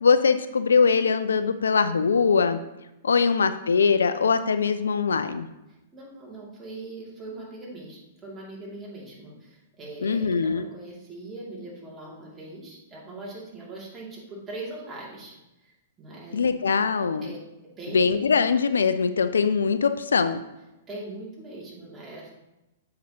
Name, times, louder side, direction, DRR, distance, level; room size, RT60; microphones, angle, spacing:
voice 1, 0.0-2.6 3.0-5.5 10.0-10.7 16.3-17.3 17.9-20.4, left 5 dB, 80° left, 11 dB, 0.4 m, -22 dB
voice 2, 5.9-15.3 15.6-15.7 16.0-16.5 17.2-17.4 17.7-18.0 20.9-22.3, right 2 dB, 20° right, -4 dB, 2.4 m, -41 dB
7.5 x 5.8 x 2.8 m, 0.96 s
hypercardioid pair, 110°, 0 cm